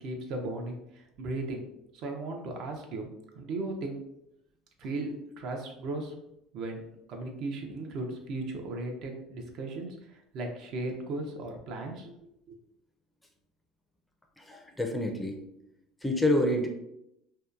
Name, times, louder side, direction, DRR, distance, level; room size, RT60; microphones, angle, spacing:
voice 1, 0.0-1.6 1.9-4.0 4.8-6.1 6.5-6.8 7.1-12.1 12.5-12.6, right 2 dB, 60° right, 2 dB, 0.5 m, -36 dB
voice 2, 14.4-15.4 16.0-16.7, left 1 dB, 10° left, 2 dB, 0.4 m, -27 dB
2.7 x 2.1 x 2.4 m, 0.82 s
supercardioid pair, 105°, 0 cm